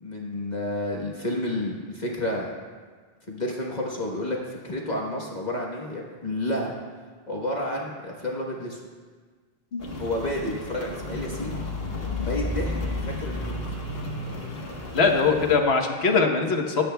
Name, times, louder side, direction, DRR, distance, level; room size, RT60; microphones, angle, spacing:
voice 1, 0.0-2.5 3.3-6.7 7.3-8.8 10.0-11.6 12.2-12.8 13.1-13.6, left 1 dB, 45° left, -2 dB, 1.3 m, -30 dB
voice 2, 9.7-10.0 14.9-16.8, left 4 dB, 85° left, 3 dB, 1.3 m, -22 dB
Rain, 9.8-15.6, left 1 dB, 70° left, 1.5 m, -32 dB
26.0 x 8.7 x 2.2 m, 1.5 s
omnidirectional pair, 1.0 m